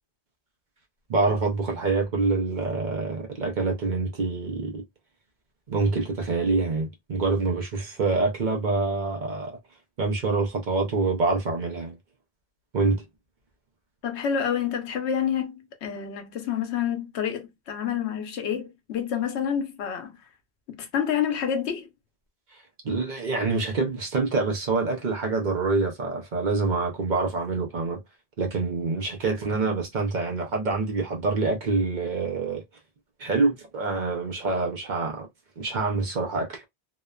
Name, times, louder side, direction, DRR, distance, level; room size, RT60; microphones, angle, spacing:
voice 1, 1.1-4.8 5.7-9.6 10.0-12.0 12.7-13.0 22.8-28.0 28.4-32.6 33.2-35.3 35.6-36.6, right 3 dB, 50° right, 0.7 m, -26 dB
voice 2, 14.0-20.2 20.7-21.9, left 8 dB, 90° left, 1.0 m, -28 dB
2.8 x 2.1 x 2.3 m
omnidirectional pair, 1.1 m